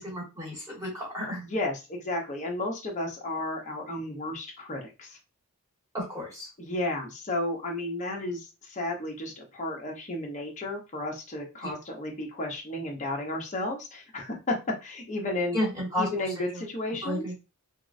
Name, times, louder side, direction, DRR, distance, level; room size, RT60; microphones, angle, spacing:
voice 1, 0.0-1.4 5.9-6.5 11.6-11.7 15.5-16.1 16.4-16.6 17.0-17.3, equal, 15° right, -3 dB, 1.1 m, -32 dB
voice 2, 1.4-5.2 6.6-14.6 14.8-15.6 16.0-17.3, left 1 dB, 35° left, 0 dB, 0.8 m, -33 dB
3.7 x 2.0 x 2.5 m, 0.27 s
head